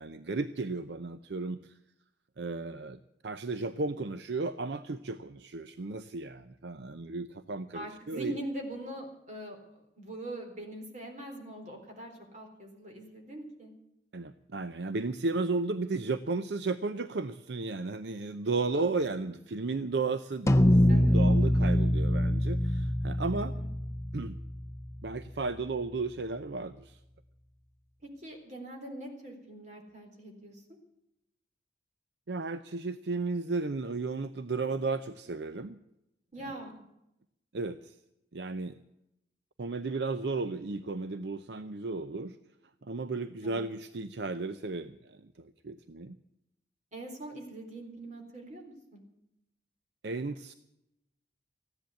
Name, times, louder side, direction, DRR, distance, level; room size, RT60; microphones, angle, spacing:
voice 1, 0.0-1.7 2.4-8.4 14.1-23.5 24.1-24.4 25.0-27.0 32.3-35.8 36.4-36.5 37.5-38.0 38.3-38.8 39.6-42.4 42.8-46.2 50.0-50.5, right 3 dB, 70° right, 11 dB, 0.6 m, -34 dB
voice 2, 7.7-13.7 20.9-21.2 23.5-23.7 28.2-30.6 36.3-36.8 43.4-43.7 46.9-49.0, right 1 dB, 40° right, 2 dB, 3.9 m, -42 dB
sound 1, 20.5-25.1, left 1 dB, 15° left, 0.6 m, -25 dB
15.0 x 10.5 x 8.2 m, 0.85 s
head